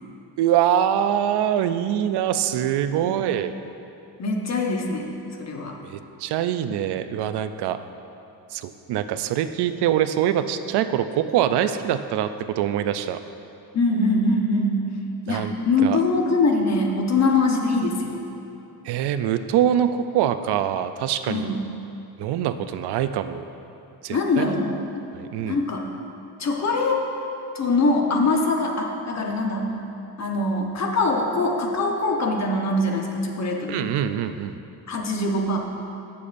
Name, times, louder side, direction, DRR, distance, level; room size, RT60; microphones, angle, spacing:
voice 1, 0.4-3.5 5.8-7.8 8.5-13.2 15.3-15.5 15.8-16.0 18.8-21.6 22.2-23.4 24.0-24.6 25.1-25.6 33.7-34.5, right 10 dB, 90° right, 10 dB, 0.5 m, -24 dB
voice 2, 4.2-5.1 5.4-5.8 13.7-14.8 15.3-18.2 21.3-21.7 24.1-25.1 25.4-25.9 26.4-27.1 27.5-29.7 30.2-33.8 34.9-35.6, left 2 dB, 45° left, 1 dB, 1.0 m, -23 dB
15.0 x 6.9 x 2.6 m, 2.9 s
cardioid pair, 125°, 39 cm